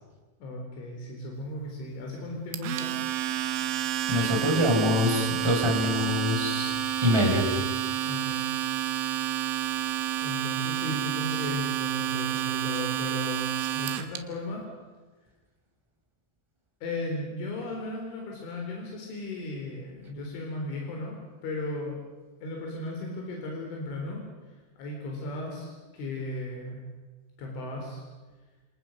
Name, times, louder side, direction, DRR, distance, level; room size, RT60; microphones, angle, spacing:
voice 1, 0.4-3.0 8.0-8.5 10.2-14.7 16.8-22.0 22.4-24.2 24.5-26.8 27.4-28.0, left 2 dB, 85° left, 0 dB, 6.5 m, -36 dB
Domestic sounds home sounds, 2.5-14.2, right 11 dB, 85° right, 3.8 m, -30 dB
voice 2, 4.1-6.7 7.0-7.4, left 1 dB, 5° right, 0 dB, 5.2 m, -24 dB
29.5 x 28.0 x 6.5 m, 1.3 s
omnidirectional pair, 5.3 m